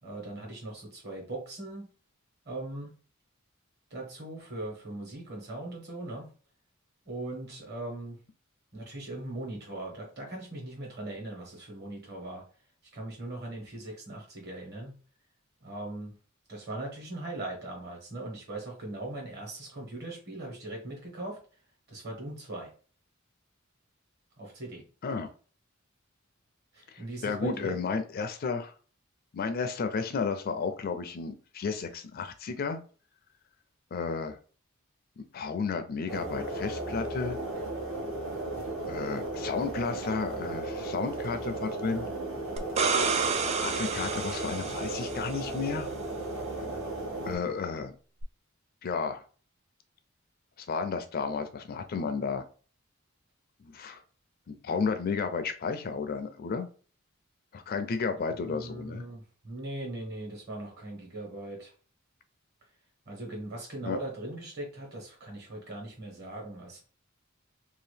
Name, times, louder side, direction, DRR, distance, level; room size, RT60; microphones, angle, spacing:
voice 1, 0.0-1.9 2.4-2.9 3.9-6.3 7.0-8.2 8.7-12.4 12.9-14.9 15.6-16.1 16.5-21.4 21.9-22.7 24.4-24.8 26.7-27.8 58.4-61.7 63.0-66.8, right 2 dB, 50° right, 0 dB, 1.3 m, -39 dB
voice 2, 26.9-28.7 29.3-32.8 33.9-34.4 35.2-37.4 38.9-42.1 43.5-45.9 47.3-47.9 48.8-49.2 50.6-52.4 53.6-54.0 54.5-56.7 57.5-59.0 63.8-64.0, left 5 dB, 45° left, 8 dB, 0.4 m, -32 dB
sound 1, 36.1-47.4, right 2 dB, 85° right, 1.2 m, -35 dB
sound 2, 42.6-45.4 48.2-48.3, right 5 dB, 30° right, 0.3 m, -30 dB
2.8 x 2.5 x 3.3 m, 0.39 s
head